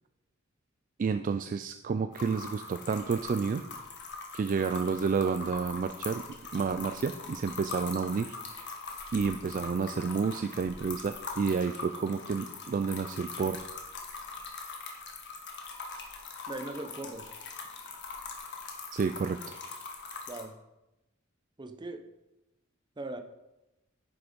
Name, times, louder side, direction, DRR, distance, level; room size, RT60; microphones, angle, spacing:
voice 1, 1.0-3.6 4.3-6.2 6.5-8.7 9.1-13.6 18.9-19.6, right 5 dB, 40° right, 9 dB, 0.3 m, -30 dB
sound 1, 2.1-20.4, left 4 dB, 60° left, 1.5 m, -42 dB
voice 2, 16.5-17.2 20.3-20.6 21.6-22.0 23.0-23.2, right 2 dB, 20° right, 7 dB, 0.7 m, -39 dB
9.7 x 6.0 x 5.2 m, 0.99 s
head